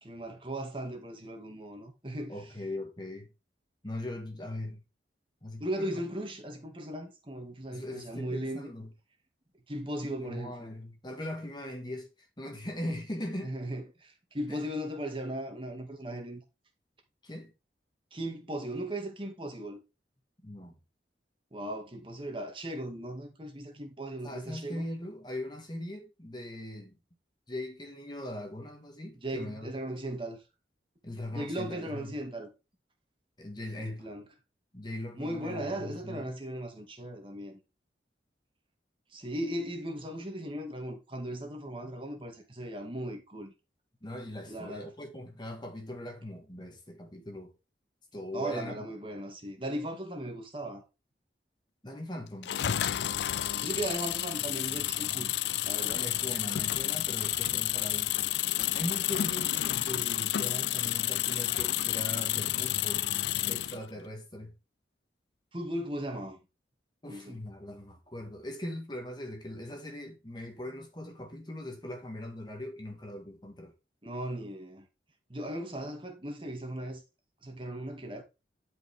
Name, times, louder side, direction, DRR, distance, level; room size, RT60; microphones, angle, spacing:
voice 1, 0.0-2.3 5.6-8.7 9.7-10.7 13.4-16.4 18.1-19.8 21.5-24.8 29.2-30.4 31.3-32.5 33.8-34.2 35.1-37.6 39.1-43.5 44.5-44.9 48.3-50.8 53.5-55.4 55.6-56.1 65.5-66.4 67.1-67.4 74.0-74.9 75.3-77.0 77.4-78.2, right 1 dB, 30° right, 2.1 m, -37 dB
voice 2, 2.3-3.3 3.8-4.8 5.4-6.0 7.7-8.9 10.0-12.1 12.4-13.5 14.5-14.6 17.2-17.5 20.4-20.7 24.2-27.0 27.5-29.7 31.0-32.2 33.4-34.1 34.7-36.3 44.0-47.5 48.1-48.9 51.8-52.6 55.9-58.2 58.7-63.1 63.5-64.5 67.0-73.7, left 1 dB, 25° left, 1.7 m, -40 dB
sound 1, 52.4-63.8, left 13 dB, 70° left, 0.4 m, -30 dB
12.0 x 5.1 x 3.6 m
head